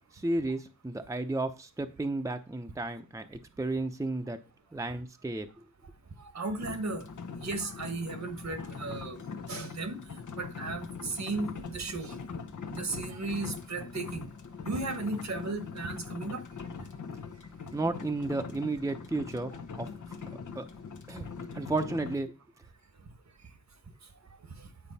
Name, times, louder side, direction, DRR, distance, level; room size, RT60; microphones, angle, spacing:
voice 1, 0.2-4.4 4.7-5.5 17.7-19.5 19.8-19.9 20.3-20.7 21.1-21.3 21.5-22.3, right 2 dB, 10° right, 0.7 m, -33 dB
voice 2, 6.2-7.1 7.4-9.2 9.5-10.0 10.3-12.2 12.7-14.3 14.6-16.4, right 3 dB, 60° right, 1.3 m, -35 dB
sound 1, 6.6-22.2, left 5 dB, 75° left, 1.0 m, -42 dB
9.1 x 4.6 x 4.2 m
cardioid pair, 65°, 31 cm